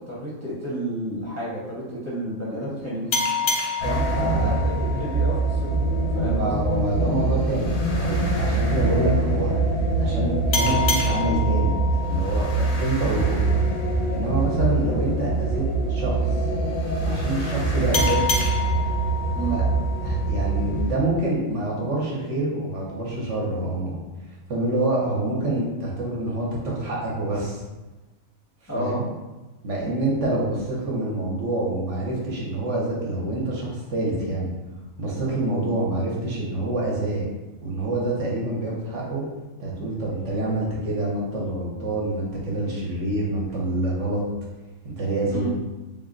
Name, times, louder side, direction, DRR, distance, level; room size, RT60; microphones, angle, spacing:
voice 1, 0.1-3.5 3.8-5.8 6.1-6.7 19.3-19.6 28.7-29.0 45.3-45.5, right 1 dB, 15° left, -8 dB, 0.7 m, -31 dB
sound 1, 3.1-6.3 10.5-13.8 17.9-20.9, left 4 dB, 60° left, 0.7 m, -29 dB
sound 2, 3.8-21.0, right 2 dB, 80° left, 0.3 m, -24 dB
voice 2, 4.1-4.6 6.3-11.7 12.1-13.6 14.1-16.4 17.0-18.2 19.5-19.6 20.0-24.0 24.5-27.6 28.7-29.0 29.6-34.5 35.0-37.3 37.6-39.2 39.6-44.2 44.8-45.5, right 2 dB, 65° right, -4 dB, 1.1 m, -26 dB
3.5 x 2.1 x 3.7 m, 1.1 s
omnidirectional pair, 1.4 m